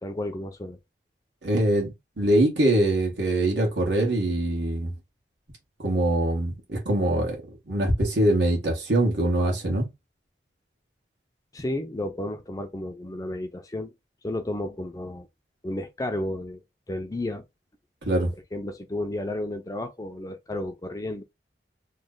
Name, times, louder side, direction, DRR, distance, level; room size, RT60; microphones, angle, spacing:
voice 1, 0.0-0.8 11.5-13.9 14.2-15.3 15.6-16.6 16.9-17.4 18.5-21.2, left 1 dB, 20° left, 0.4 m, -32 dB
voice 2, 1.4-4.9 5.8-7.4 7.7-9.9 18.0-18.3, right 1 dB, 85° right, 1.5 m, -23 dB
3.1 x 2.2 x 3.7 m
head